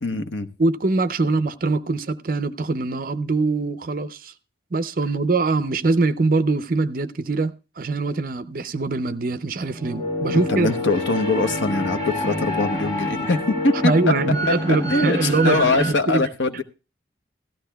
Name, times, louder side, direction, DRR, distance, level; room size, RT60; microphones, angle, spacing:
voice 1, 0.0-0.5 10.3-14.1 14.5-16.6, left 3 dB, 80° left, 0.9 m, -23 dB
voice 2, 0.6-4.3 4.7-10.7 13.8-16.2, right 3 dB, 45° right, 0.5 m, -23 dB
sound 1, 9.6-15.9, left 1 dB, 20° left, 1.9 m, -27 dB
16.5 x 13.5 x 2.2 m
head